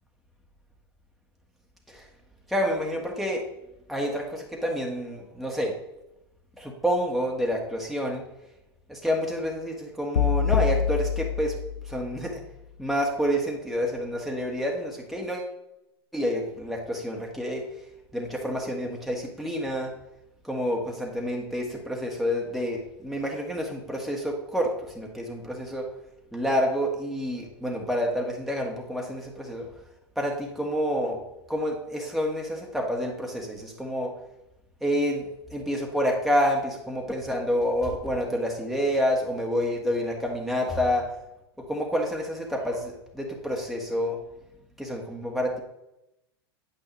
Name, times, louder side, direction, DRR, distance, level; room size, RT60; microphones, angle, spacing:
voice 1, 2.5-3.4 3.9-5.7 6.6-8.2 8.9-11.5 11.9-12.4 12.8-15.5 16.1-17.6 18.1-19.9 20.4-25.9 26.3-29.6 30.2-31.2 31.5-34.1 34.8-35.2 35.5-41.1 41.6-44.2 44.8-45.6, equal, ahead, -1 dB, 1.4 m, -28 dB
sound 1, 10.2-12.4, left 7 dB, 80° left, 0.6 m, -26 dB
9.3 x 8.8 x 3.0 m, 0.90 s
hypercardioid pair, 95°, 14 cm